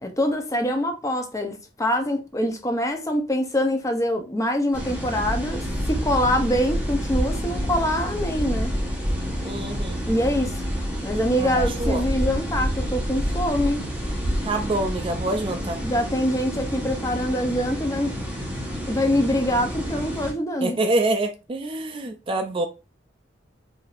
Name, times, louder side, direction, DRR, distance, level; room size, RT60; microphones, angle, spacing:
voice 1, 0.0-8.7 10.1-10.5 11.0-13.8 15.8-18.1 18.9-20.8, equal, 15° left, 0.7 m, -24 dB
sound 1, 4.7-20.3, equal, 10° right, 1.0 m, -28 dB
voice 2, 9.4-10.1 11.4-12.0 14.4-15.8 20.6-22.7, right 2 dB, 30° right, 0.4 m, -26 dB
4.8 x 2.6 x 2.5 m
head